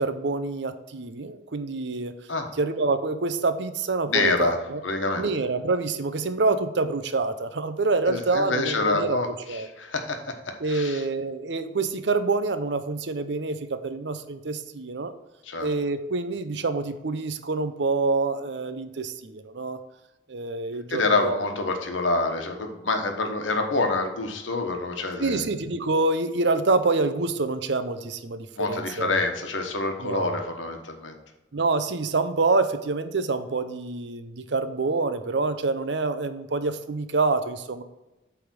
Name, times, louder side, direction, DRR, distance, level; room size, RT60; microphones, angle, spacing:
voice 1, 0.0-2.1 2.6-4.8 5.2-9.2 9.5-9.7 10.6-15.1 15.6-19.8 20.3-21.4 25.2-29.2 30.0-30.4 31.5-37.8, right 3 dB, 65° right, 10 dB, 0.6 m, -26 dB
voice 2, 4.1-4.6 4.8-5.2 8.1-11.0 15.4-15.7 20.9-25.4 28.6-31.1, left 3 dB, 90° left, 5 dB, 1.2 m, -27 dB
8.2 x 3.5 x 6.1 m, 1.0 s
head